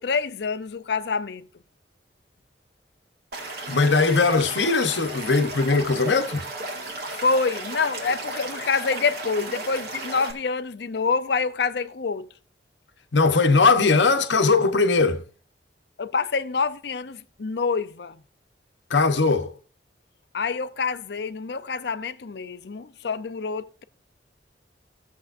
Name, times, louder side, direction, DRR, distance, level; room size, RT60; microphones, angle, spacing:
voice 1, 0.0-1.5 7.2-12.3 16.0-18.2 20.3-23.8, left 4 dB, 65° left, 0.5 m, -27 dB
Stream / Liquid, 3.3-10.3, right 2 dB, 60° right, 2.0 m, -35 dB
voice 2, 3.7-6.4 13.1-15.2 18.9-19.5, left 4 dB, 80° left, 0.9 m, -20 dB
16.5 x 7.0 x 2.5 m
head